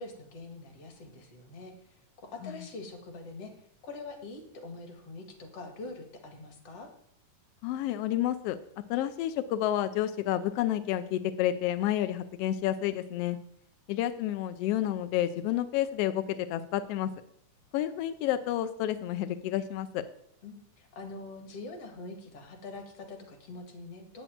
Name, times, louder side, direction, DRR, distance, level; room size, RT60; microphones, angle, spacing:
voice 1, 0.0-3.5 3.8-6.9 20.4-24.2, left 3 dB, 55° left, 5 dB, 2.8 m, -44 dB
voice 2, 7.6-8.6 8.9-13.4 13.9-17.1 17.7-20.0, left 12 dB, 80° left, 10 dB, 1.4 m, -30 dB
8.7 x 7.9 x 9.1 m, 0.68 s
omnidirectional pair, 3.5 m